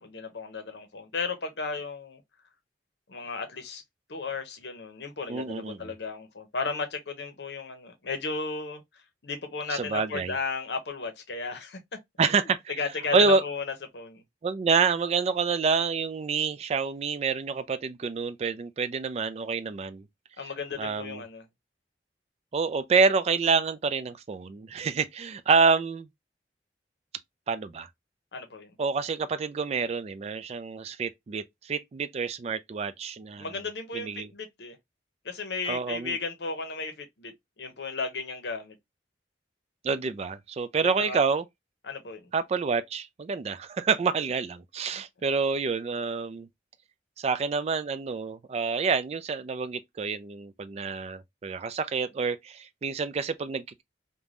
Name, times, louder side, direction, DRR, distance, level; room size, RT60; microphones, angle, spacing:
voice 1, 0.0-2.2 3.1-3.8 4.1-8.8 9.2-11.8 12.2-14.2 20.4-21.4 28.3-28.7 33.4-34.8 35.2-37.3 37.6-38.8 40.7-41.2 41.8-42.3, left 4 dB, 70° left, 0.7 m, -34 dB
voice 2, 5.3-5.9 9.7-10.3 12.2-12.6 13.1-13.4 14.4-20.0 20.8-21.2 22.5-26.1 27.5-27.9 28.8-33.5 33.9-34.3 35.7-36.2 39.8-41.4 42.3-46.5 47.2-53.8, right 5 dB, 35° right, 0.3 m, -27 dB
3.3 x 2.2 x 2.4 m
head